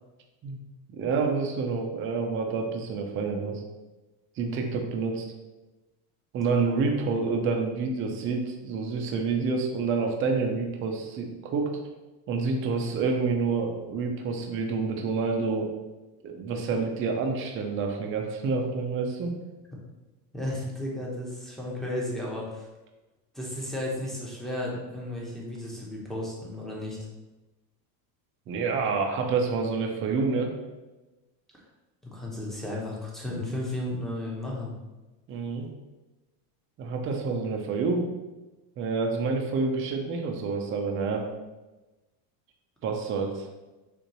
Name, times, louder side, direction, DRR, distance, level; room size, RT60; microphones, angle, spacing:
voice 1, 0.9-3.6 4.4-5.3 6.3-11.7 12.3-15.7 16.2-19.3 28.5-30.5 35.3-35.7 36.8-38.1 38.8-41.3 42.8-43.5, right 4 dB, 25° right, 2 dB, 0.5 m, -28 dB
voice 2, 20.3-22.7 23.3-27.0 32.0-34.7, left 1 dB, ahead, -5 dB, 0.8 m, -34 dB
6.7 x 2.5 x 3.0 m, 1.1 s
supercardioid pair, 140°, 49 cm